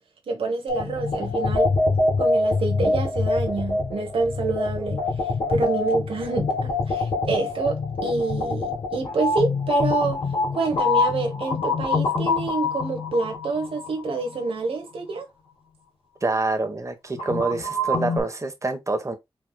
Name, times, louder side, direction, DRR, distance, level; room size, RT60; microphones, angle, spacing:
voice 1, 0.3-1.7 2.2-5.0 5.5-10.2 10.5-15.3, right 3 dB, 85° right, 1.1 m, -27 dB
sound 1, 0.7-14.4 17.1-18.2, left 3 dB, 80° left, 2.5 m, -25 dB
voice 2, 16.2-19.2, right 2 dB, 35° right, 1.1 m, -26 dB
4.6 x 3.5 x 2.3 m
cardioid pair, 55°, 9 cm